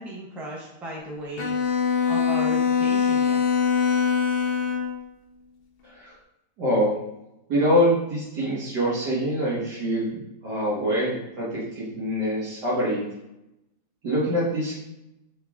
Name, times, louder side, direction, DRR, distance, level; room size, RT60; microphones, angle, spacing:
voice 1, 0.0-1.6 2.1-3.4, equal, ahead, -4 dB, 0.6 m, -36 dB
Bowed string instrument, 1.4-5.0, left 6 dB, 85° left, 0.5 m, -23 dB
voice 2, 6.6-7.0 7.5-13.0 14.0-14.7, equal, 80° right, -7 dB, 1.9 m, -24 dB
5.1 x 4.2 x 2.3 m, 0.90 s
omnidirectional pair, 1.8 m